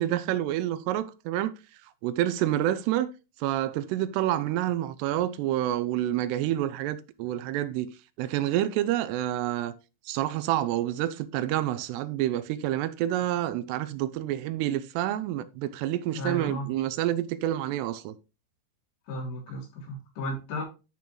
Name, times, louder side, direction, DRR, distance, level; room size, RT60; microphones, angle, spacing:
voice 1, 0.0-1.5 2.0-3.1 3.4-7.9 8.2-9.7 10.1-18.2, right 13 dB, 80° right, 2.6 m, -28 dB
voice 2, 16.1-16.6 19.1-20.6, left 1 dB, 85° left, 5.1 m, -34 dB
11.5 x 5.3 x 3.0 m
omnidirectional pair, 4.9 m